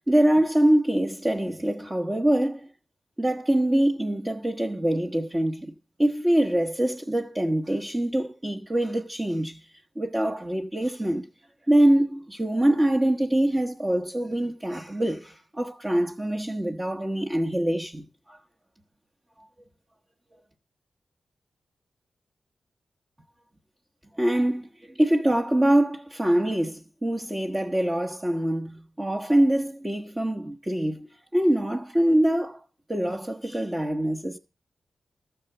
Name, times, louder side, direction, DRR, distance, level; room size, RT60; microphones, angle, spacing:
voice 1, 0.1-2.7 3.2-5.7 6.0-9.6 10.0-11.2 11.7-18.4 24.1-24.7 24.9-31.1 31.3-32.6 32.9-34.4, right 1 dB, 15° right, 1.1 m, -24 dB
14.0 x 6.8 x 7.7 m
wide cardioid pair, 115°, 0 cm